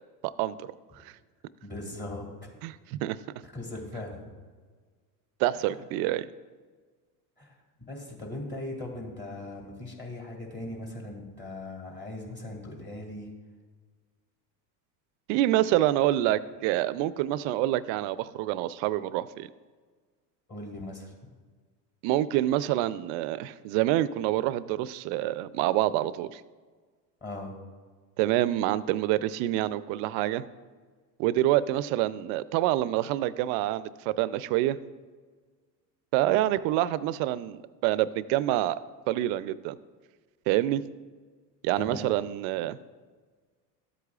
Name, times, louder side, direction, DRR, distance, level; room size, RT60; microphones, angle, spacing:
voice 1, 0.2-0.7 1.0-1.1 2.6-3.2 5.4-6.3 15.3-19.5 22.0-26.4 28.2-30.4 31.2-34.8 36.1-38.8 39.1-39.8 40.5-40.8 41.6-42.8, right 14 dB, 65° right, 16 dB, 0.6 m, -27 dB
voice 2, 1.6-2.6 3.4-4.4 5.6-5.8 7.4-7.6 7.9-13.3 20.5-21.1 27.2-27.5 41.8-42.2, left 1 dB, 20° left, 0 dB, 2.4 m, -39 dB
13.0 x 8.2 x 2.4 m, 1.5 s
supercardioid pair, 105°, 48 cm